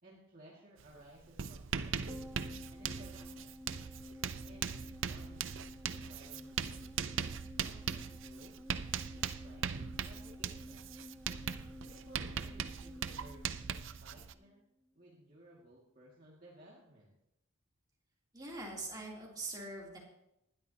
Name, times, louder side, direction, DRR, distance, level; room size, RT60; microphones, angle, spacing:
voice 1, 0.0-3.6 4.4-5.5 5.8-6.9 7.5-8.5 9.1-9.7 10.0-10.9 11.8-14.6 14.9-17.2, right 1 dB, 40° right, -5 dB, 2.3 m, -58 dB
Writing, 0.8-0.9 1.2-14.3, right 7 dB, 55° right, 0.5 m, -40 dB
sound 1, 2.1-14.6 14.9-15.0, left 1 dB, ahead, 0.8 m, -52 dB
voice 2, 18.3-20.0, right 2 dB, 20° right, -4 dB, 3.3 m, -43 dB
20.0 x 12.5 x 2.9 m, 0.82 s
head